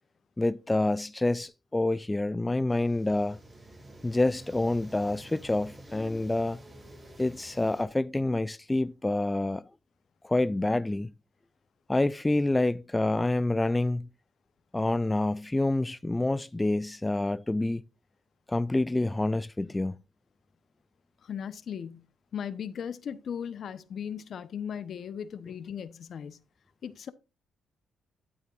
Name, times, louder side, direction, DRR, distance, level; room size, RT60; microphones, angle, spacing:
voice 1, 0.4-3.4 4.0-6.6 7.2-9.7 10.2-11.1 11.9-14.1 14.7-17.8 18.5-20.0, left 2 dB, 15° left, 0.4 m, -27 dB
sound 1, 2.7-7.9, right 1 dB, 25° right, 3.1 m, -50 dB
voice 2, 21.2-22.0 22.3-26.4 26.8-27.1, left 8 dB, 60° left, 0.9 m, -37 dB
11.0 x 8.7 x 2.5 m
supercardioid pair, 70°, 0 cm